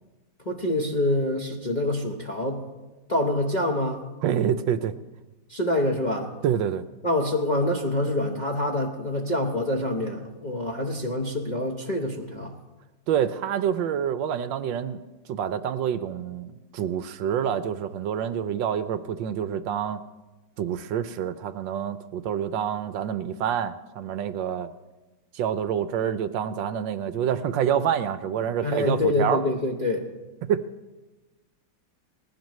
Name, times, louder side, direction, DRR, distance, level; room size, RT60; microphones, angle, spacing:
voice 1, 0.5-2.6 3.1-4.0 5.5-6.3 7.0-12.5 28.6-30.1, left 1 dB, 35° left, 0 dB, 0.8 m, -26 dB
voice 2, 4.2-5.0 6.4-6.8 13.1-15.0 15.3-20.0 20.6-24.7 25.3-29.4 30.4-30.7, right 9 dB, 75° right, 12 dB, 1.2 m, -27 dB
19.5 x 15.5 x 3.1 m, 1.2 s
omnidirectional pair, 2.2 m